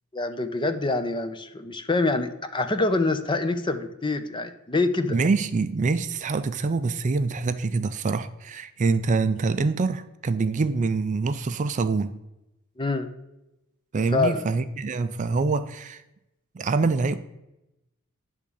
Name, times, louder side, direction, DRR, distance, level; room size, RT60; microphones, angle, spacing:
voice 1, 0.1-5.2 12.8-13.1 14.1-14.5, left 3 dB, 20° left, 9 dB, 0.6 m, -25 dB
voice 2, 5.1-12.2 13.9-16.0 16.5-17.2, right 4 dB, 35° right, 11 dB, 0.4 m, -25 dB
10.0 x 3.6 x 6.9 m, 0.91 s
head